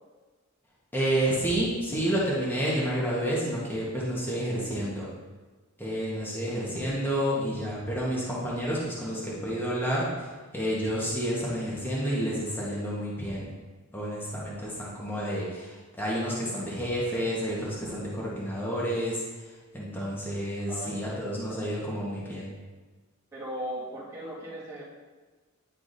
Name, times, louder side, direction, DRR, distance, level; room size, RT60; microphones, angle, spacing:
voice 1, 0.9-5.1 5.8-10.3 10.5-13.5 13.9-19.2 19.7-22.5, equal, 10° left, -7 dB, 1.1 m, -30 dB
voice 2, 20.7-21.7 23.3-24.8, equal, 15° right, -9 dB, 1.8 m, -38 dB
9.9 x 4.6 x 2.6 m, 1.3 s
head